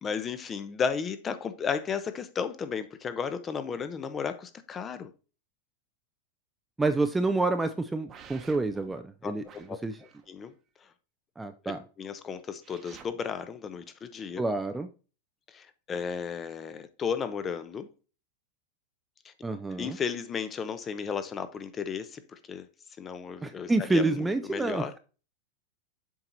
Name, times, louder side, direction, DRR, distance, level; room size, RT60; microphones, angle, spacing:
voice 1, 0.0-5.1 9.2-9.8 10.3-10.5 12.0-14.4 15.5-17.9 19.2-19.3 19.8-22.7 23.0-25.0, left 6 dB, 20° left, 0.8 m, -34 dB
voice 2, 6.8-9.4 9.8-10.0 11.4-11.8 14.4-14.9 19.4-20.0 23.4-25.0, right 2 dB, 10° right, 0.5 m, -28 dB
sound 1, 8.1-8.9 9.5-10.5 12.6-13.1, right 7 dB, 25° right, 1.0 m, -51 dB
7.4 x 4.5 x 4.0 m
supercardioid pair, 140°, 0 cm